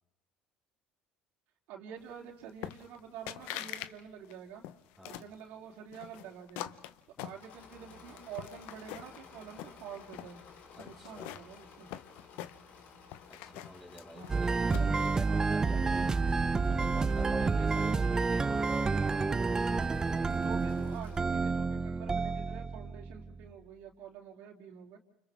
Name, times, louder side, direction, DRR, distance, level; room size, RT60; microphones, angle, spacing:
voice 1, 1.7-4.6 5.0-6.7 7.2-10.4 10.8-11.9 14.1-14.4 17.4-17.7 19.0-19.3 20.1-25.0, right 7 dB, 75° right, 1 dB, 3.3 m, -48 dB
sound 1, 2.6-3.0 3.3-3.9 4.2-5.3 5.9-7.8 8.2-9.2 9.5-10.3 10.8-12.8 13.1-15.1, left 13 dB, 80° left, 1.0 m, -43 dB
Engine / Mechanisms, 7.2-21.5, left 5 dB, 65° left, 3.7 m, -55 dB
voice 2, 10.8-11.4 13.3-16.2 16.5-18.4, equal, 5° left, 0 dB, 4.3 m, -48 dB
sound 2, 14.3-23.5, right 4 dB, 20° right, 0.8 m, -30 dB
30.0 x 29.0 x 3.6 m, 0.84 s
cardioid pair, 115°, 3 cm